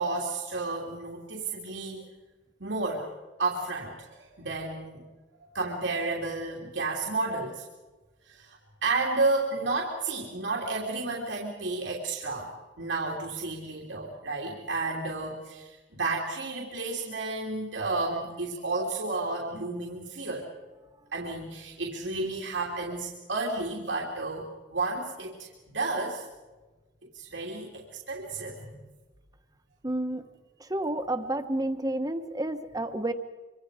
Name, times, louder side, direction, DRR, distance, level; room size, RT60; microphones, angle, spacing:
voice 1, 0.0-2.1 2.6-3.1 3.4-5.1 5.4-7.6 8.2-20.5 21.1-26.2 27.1-28.8, right 3 dB, 85° right, -2 dB, 2.9 m, -32 dB
voice 2, 29.8-30.2 30.7-33.1, right 1 dB, 20° right, 8 dB, 1.1 m, -30 dB
25.5 x 25.0 x 5.0 m, 1.2 s
head